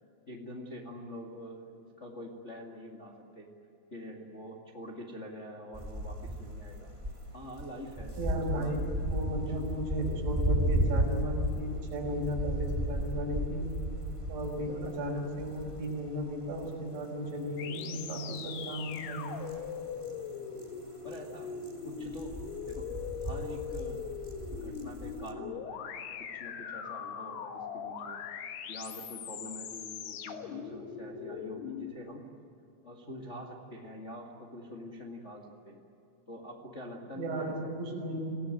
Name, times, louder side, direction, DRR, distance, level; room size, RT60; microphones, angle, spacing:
voice 1, 0.3-3.5 3.9-6.9 7.3-8.2 8.5-8.8 9.5-9.6 21.0-21.5 21.8-22.3 22.6-22.8 23.2-24.1 24.5-28.2 28.6-32.3 32.8-35.8 36.3-37.7, equal, 45° left, -1 dB, 0.8 m, -45 dB
sound 1, 5.7-7.1 7.4-17.0 17.3-17.4 17.7-17.8 18.3-18.6 18.9-20.6 20.9-21.2 21.5-25.3, right 1 dB, 20° right, 0.8 m, -34 dB
voice 2, 8.2-13.7 14.3-19.3 37.2-38.4, equal, 75° right, 0 dB, 7.6 m, -35 dB
sound 2, 17.6-31.9, left 7 dB, 65° left, 3.2 m, -41 dB
26.0 x 18.0 x 9.2 m, 2.7 s
omnidirectional pair, 5.4 m